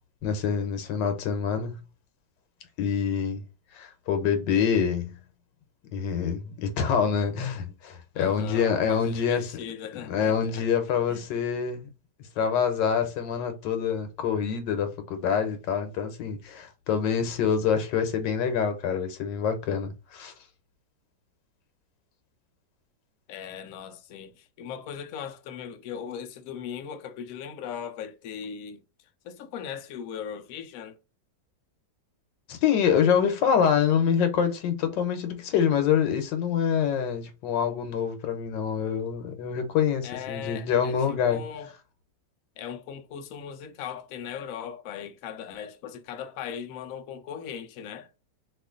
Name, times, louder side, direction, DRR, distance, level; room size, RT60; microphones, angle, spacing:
voice 1, 0.2-1.8 2.8-3.4 3.7-5.1 5.9-9.5 10.1-11.9 12.4-20.3 32.5-41.4, left 7 dB, 90° left, 1.4 m, -26 dB
voice 2, 8.1-10.7 11.1-11.3 23.3-28.8 29.2-31.0 40.0-41.7 42.6-48.1, left 8 dB, 70° left, 0.8 m, -38 dB
3.0 x 2.5 x 3.6 m
omnidirectional pair, 1.9 m